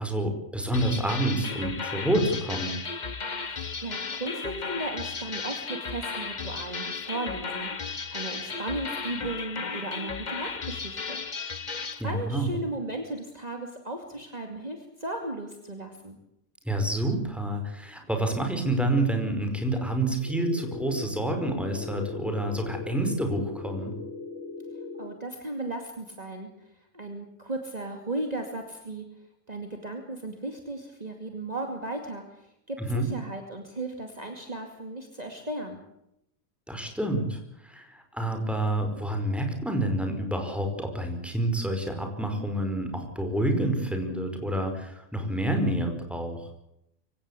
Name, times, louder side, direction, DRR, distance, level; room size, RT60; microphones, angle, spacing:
voice 1, 0.0-2.7 12.0-12.5 16.6-23.9 32.8-33.1 36.7-46.5, right 1 dB, ahead, 4 dB, 4.9 m, -28 dB
sound 1, 0.7-12.0, left 5 dB, 35° left, 1.2 m, -35 dB
voice 2, 3.5-11.6 11.9-16.2 25.0-29.1 29.5-35.8, right 2 dB, 30° right, 3 dB, 2.6 m, -36 dB
sound 2, 20.2-25.2, left 3 dB, 55° left, 1.8 m, -39 dB
24.5 x 17.5 x 8.3 m, 0.81 s
omnidirectional pair, 1.4 m